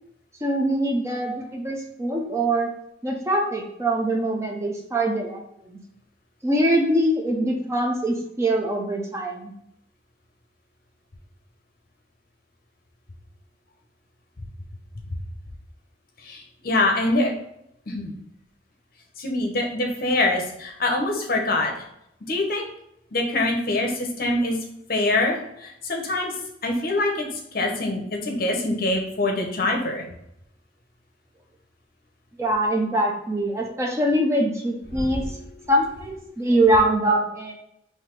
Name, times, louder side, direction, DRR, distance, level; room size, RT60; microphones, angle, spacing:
voice 1, 0.4-2.7 3.0-5.8 6.4-9.5 32.4-35.4 35.7-37.5, right 1 dB, 15° right, 0 dB, 0.5 m, -23 dB
voice 2, 16.2-17.3 17.9-18.1 19.2-21.7 22.3-22.6 23.1-24.6 24.9-26.3 26.6-27.3 27.5-30.0 34.9-35.3, left 2 dB, 50° left, 2 dB, 0.8 m, -24 dB
4.0 x 2.7 x 4.6 m, 0.77 s
head